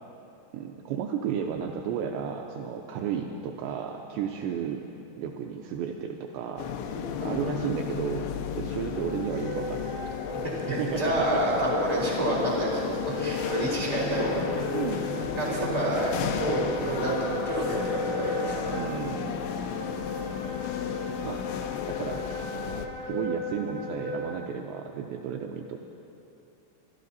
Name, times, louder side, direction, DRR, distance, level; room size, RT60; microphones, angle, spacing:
voice 1, 0.5-4.9 5.2-6.7 7.2-10.0 10.7-11.4 14.7-16.1 18.7-19.5 21.2-21.5 21.9-22.3 23.0-25.8, right 7 dB, 85° right, 3 dB, 2.5 m, -33 dB
sound 1, 6.6-22.9, left 8 dB, 80° left, 2.8 m, -33 dB
voice 2, 6.9-7.5 10.7-14.4 15.3-18.6, right 1 dB, 10° right, -6 dB, 3.0 m, -29 dB
Wind instrument woodwind instrument, 8.9-24.4, left 1 dB, 25° right, 1.2 m, -36 dB
26.0 x 12.5 x 4.1 m, 2.9 s
omnidirectional pair, 5.7 m